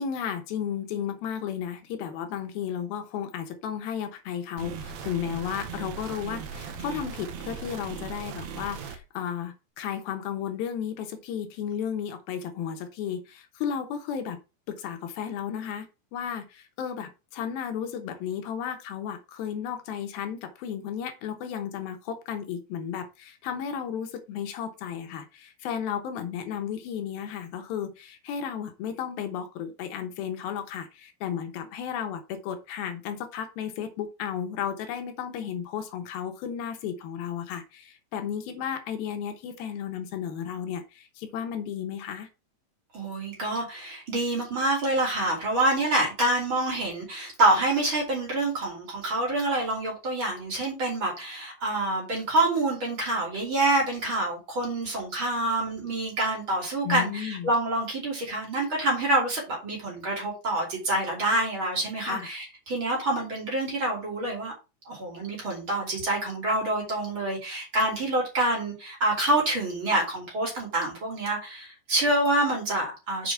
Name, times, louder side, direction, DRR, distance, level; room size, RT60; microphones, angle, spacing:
voice 1, 0.0-14.4 14.7-15.9 16.1-42.3 56.8-57.5 62.0-62.3, left 8 dB, 90° left, 7 dB, 2.9 m, -33 dB
sound 1, 4.6-9.0, right 6 dB, 70° right, 1.8 m, -38 dB
voice 2, 42.9-64.5 64.9-73.3, right 2 dB, 35° right, -1 dB, 3.3 m, -27 dB
6.9 x 5.0 x 4.6 m, 0.29 s
omnidirectional pair, 4.2 m